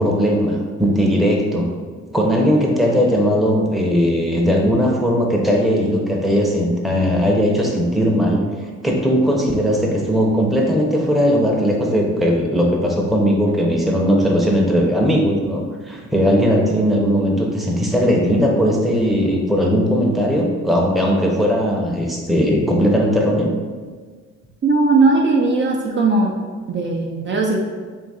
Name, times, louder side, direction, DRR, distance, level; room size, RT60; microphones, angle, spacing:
voice 1, 0.0-1.7 2.1-8.4 8.8-23.5, equal, ahead, -2 dB, 0.7 m, -18 dB
voice 2, 24.6-26.3 26.7-27.6, right 3 dB, 40° right, -1 dB, 0.5 m, -17 dB
3.5 x 2.8 x 4.2 m, 1.5 s
cardioid pair, 90°, 30 cm